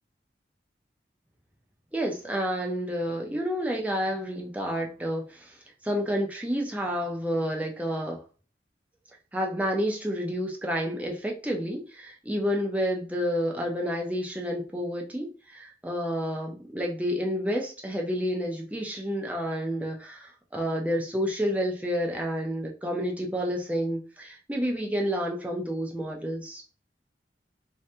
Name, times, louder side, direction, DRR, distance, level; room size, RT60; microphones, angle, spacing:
voice 1, 1.9-8.2 9.3-26.6, equal, 10° right, 0 dB, 0.5 m, -30 dB
2.7 x 2.6 x 2.2 m, 0.36 s
head